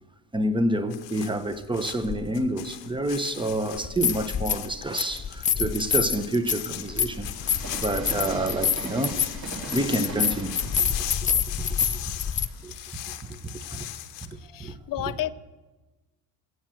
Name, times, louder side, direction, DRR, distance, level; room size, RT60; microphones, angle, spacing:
voice 1, 0.3-7.3 7.8-9.2 9.7-12.0 12.6-12.7 13.1-13.9 14.6-14.8, right 1 dB, 10° right, 0.9 m, -28 dB
sound 1, 0.9-14.3, left 14 dB, 85° left, 1.2 m, -39 dB
Train, 1.5-3.1 3.8-14.4, right 3 dB, 35° right, 3.8 m, -42 dB
sound 2, 2.1-2.2 3.7-4.7 5.0-12.5, left 7 dB, 20° left, 0.3 m, -27 dB
voice 2, 14.3-15.3, left 13 dB, 50° left, 0.7 m, -33 dB
16.0 x 7.7 x 7.7 m
cardioid pair, 105°, 44 cm